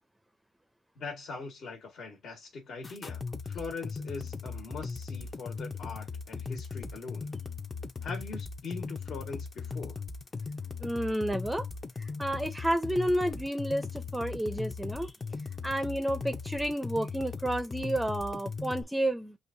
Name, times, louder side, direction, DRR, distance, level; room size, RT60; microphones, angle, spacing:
voice 1, 0.9-7.3 8.0-10.0, left 4 dB, 60° left, 1.7 m, -42 dB
sound 1, 2.8-18.8, left 4 dB, 30° left, 0.7 m, -38 dB
voice 2, 10.8-11.6 12.2-15.1 15.6-19.4, right 1 dB, 5° right, 0.6 m, -30 dB
6.3 x 2.7 x 2.6 m
cardioid pair, 90°, 0 cm